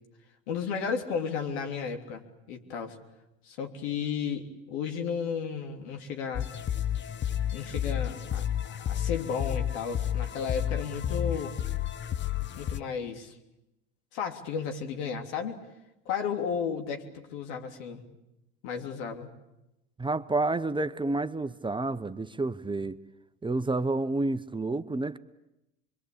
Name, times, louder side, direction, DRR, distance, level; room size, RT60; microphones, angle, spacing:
voice 1, 0.5-2.2 2.5-3.0 3.4-6.5 7.5-11.5 12.6-13.4 14.1-15.6 16.0-18.0 18.6-19.3, left 6 dB, 75° left, 3.3 m, -33 dB
sound 1, 6.3-12.8, left 10 dB, 35° left, 0.9 m, -31 dB
voice 2, 20.0-23.0 23.4-25.2, right 2 dB, 15° right, 0.9 m, -29 dB
26.0 x 23.5 x 8.7 m
hypercardioid pair, 75°, 34 cm